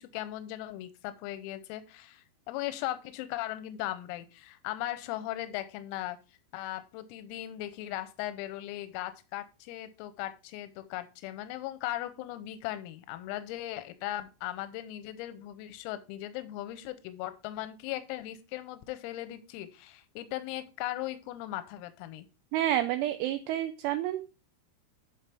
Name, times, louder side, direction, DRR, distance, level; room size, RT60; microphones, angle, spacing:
voice 1, 0.0-6.2 6.5-22.3, left 14 dB, 90° left, 11 dB, 3.5 m, -38 dB
voice 2, 22.5-24.3, right 12 dB, 80° right, 8 dB, 2.9 m, -29 dB
11.0 x 5.7 x 3.4 m, 0.31 s
omnidirectional pair, 5.9 m